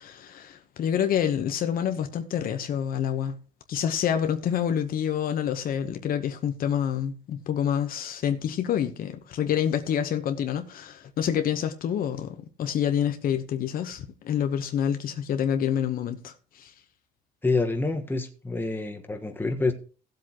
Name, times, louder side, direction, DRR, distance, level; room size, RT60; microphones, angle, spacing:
voice 1, 0.0-3.4 3.7-16.7, left 9 dB, 60° left, 1.0 m, -27 dB
voice 2, 17.4-19.7, left 3 dB, 10° left, 1.4 m, -27 dB
17.0 x 7.8 x 3.0 m
cardioid pair, 110°, 17 cm